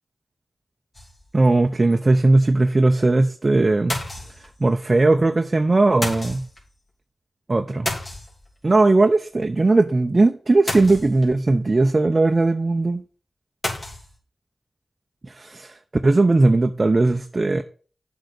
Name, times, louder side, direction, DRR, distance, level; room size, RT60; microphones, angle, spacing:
sound 1, 0.9-1.5 1.9-2.0 2.2-2.3 3.9-4.8 6.0-6.7 7.9-8.7 10.7-11.5 13.6-14.2, left 1 dB, 45° left, 3.1 m, -31 dB
voice 1, 1.3-4.0 4.6-6.4 7.5-7.9 8.6-13.0 15.4-15.7 16.0-17.6, right 2 dB, 45° right, 5 dB, 0.7 m, -18 dB
7.8 x 4.8 x 6.7 m, 0.40 s
cardioid pair, 40°, 0 cm